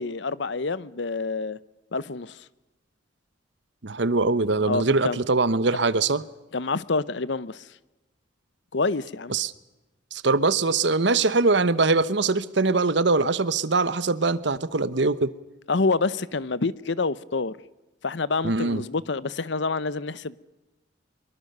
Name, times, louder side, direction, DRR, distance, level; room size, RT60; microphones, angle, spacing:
voice 1, 0.0-1.6 1.9-2.5 4.7-5.2 6.5-7.7 8.7-9.3 15.7-17.6 18.0-20.4, left 3 dB, 65° left, 0.8 m, -27 dB
voice 2, 3.8-6.2 9.3-9.5 10.1-15.3 18.4-18.8, right 3 dB, 65° right, 1.0 m, -22 dB
24.5 x 23.0 x 6.7 m
head